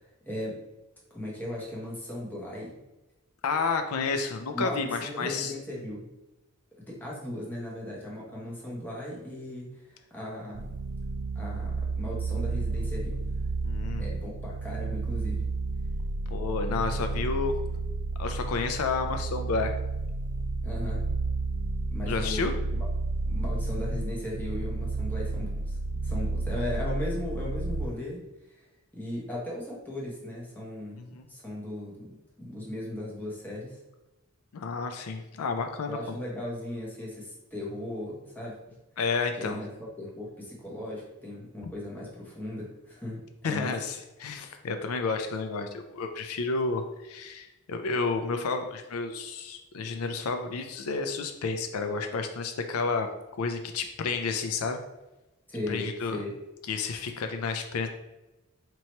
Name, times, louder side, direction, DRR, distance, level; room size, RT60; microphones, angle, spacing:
voice 1, 0.3-0.6 1.1-2.7 4.5-6.0 6.8-10.7 11.3-13.2 14.0-15.5 20.6-21.0 21.9-22.9 23.3-25.8 26.0-28.2 28.5-28.6 28.9-33.8 35.9-38.6 39.4-39.7 40.0-43.7 55.5-56.3, left 1 dB, 10° left, -5 dB, 1.0 m, -37 dB
voice 2, 3.4-5.5 13.6-14.1 16.3-17.5 18.2-19.8 22.1-22.5 31.1-31.3 34.5-36.2 39.0-39.6 43.4-53.1 53.4-54.8 55.7-56.2 56.7-57.9, left 4 dB, 85° left, 6 dB, 0.4 m, -31 dB
sound 1, 10.5-27.9, right 3 dB, 80° right, 0.3 m, -31 dB
3.0 x 2.8 x 4.3 m, 1.0 s
head